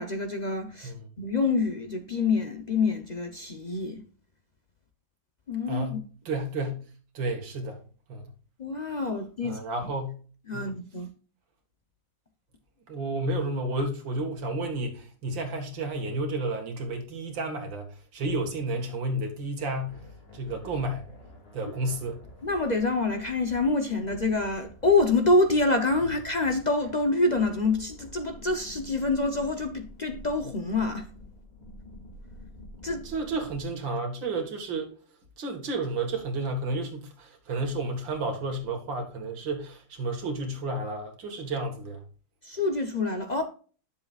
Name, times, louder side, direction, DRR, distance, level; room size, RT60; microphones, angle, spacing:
voice 1, 0.0-4.0 5.5-6.0 8.6-9.6 10.5-11.1 22.4-31.1 32.8-33.0 42.4-43.4, left 3 dB, 65° left, 0.4 m, -26 dB
voice 2, 5.7-6.9 7.1-7.8 8.1-8.3 9.4-10.2 10.5-10.8 12.9-17.9 18.1-20.0 20.3-21.1 21.5-22.2 33.1-34.9 35.4-42.0, right 2 dB, 80° right, 2.4 m, -31 dB
sound 1, 19.8-33.6, left 1 dB, 30° left, 2.4 m, -48 dB
10.5 x 7.3 x 2.4 m
omnidirectional pair, 2.0 m